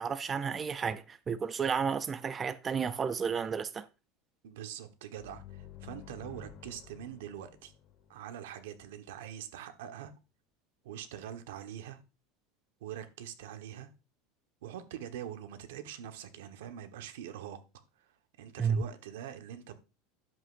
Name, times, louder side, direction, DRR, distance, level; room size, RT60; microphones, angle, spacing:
voice 1, 0.0-3.9 18.6-18.8, right 6 dB, 20° right, 0.4 m, -32 dB
voice 2, 4.4-7.7 8.1-10.1 10.8-12.0 12.8-13.9 14.6-17.6 18.0-18.1 18.4-19.7, right 10 dB, 90° right, 1.2 m, -44 dB
sound 1, 5.2-8.7, left 9 dB, 35° left, 1.3 m, -51 dB
11.5 x 7.6 x 2.5 m
supercardioid pair, 165°, 0 cm